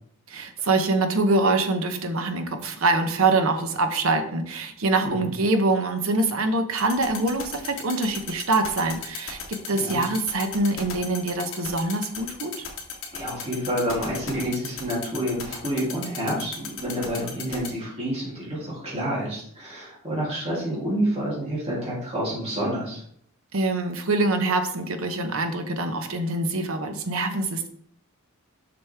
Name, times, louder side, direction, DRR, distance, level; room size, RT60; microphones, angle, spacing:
voice 1, 0.3-12.5 23.5-27.7, right 2 dB, 70° right, 7 dB, 0.9 m, -24 dB
sound 1, 6.8-17.7, left 9 dB, 65° left, 1.5 m, -34 dB
voice 2, 13.1-23.0, equal, 30° right, -7 dB, 2.9 m, -28 dB
6.7 x 6.1 x 3.5 m, 0.65 s
head